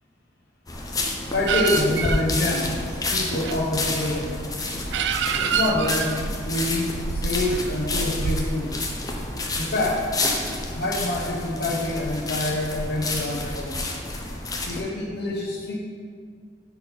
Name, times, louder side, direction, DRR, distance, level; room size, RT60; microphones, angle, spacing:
sound 1, 0.7-14.8, left 2 dB, 20° left, 0.8 m, -30 dB
voice 1, 1.3-2.8 3.1-4.3 5.2-6.1 6.4-8.7 9.5-10.1 10.7-13.8 14.6-15.8, left 2 dB, 60° left, -4 dB, 0.9 m, -26 dB
sound 2, 1.5-8.5, right 6 dB, 75° right, 0.4 m, -28 dB
10.0 x 4.2 x 4.0 m, 2.1 s
head